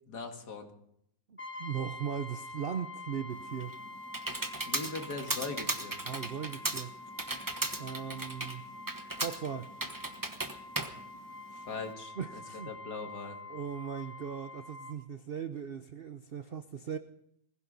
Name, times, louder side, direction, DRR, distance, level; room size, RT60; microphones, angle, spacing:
voice 1, 0.1-0.7 4.7-6.0 11.5-12.1 12.7-13.4, left 4 dB, 60° left, 4 dB, 2.5 m, -40 dB
voice 2, 1.3-3.8 6.0-7.0 7.8-8.7 9.2-9.7 12.2-12.7 13.5-17.0, right 7 dB, 80° right, 9 dB, 0.5 m, -38 dB
Brass instrument, 1.4-15.0, left 2 dB, 5° left, 2.2 m, -46 dB
Computer keyboard, 3.3-11.9, right 2 dB, 15° right, 0.8 m, -37 dB
20.5 x 15.5 x 4.0 m, 0.73 s
omnidirectional pair, 2.0 m